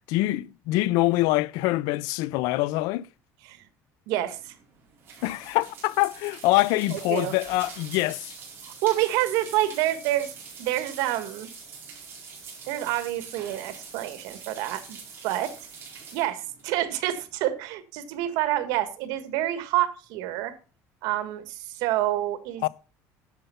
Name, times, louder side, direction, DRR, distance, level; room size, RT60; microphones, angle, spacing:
voice 1, 0.1-3.1 5.2-8.4 22.6-22.7, left 18 dB, 80° left, 0.5 m, -24 dB
voice 2, 4.1-4.5 6.9-7.3 8.6-10.3 10.6-11.5 12.6-15.0 15.2-15.5 16.1-20.5 21.0-22.6, right 14 dB, 85° right, 1.7 m, -28 dB
sound 1, 4.3-17.4, right 5 dB, 35° right, 4.6 m, -45 dB
10.5 x 7.2 x 5.6 m
cardioid pair, 175°, 6 cm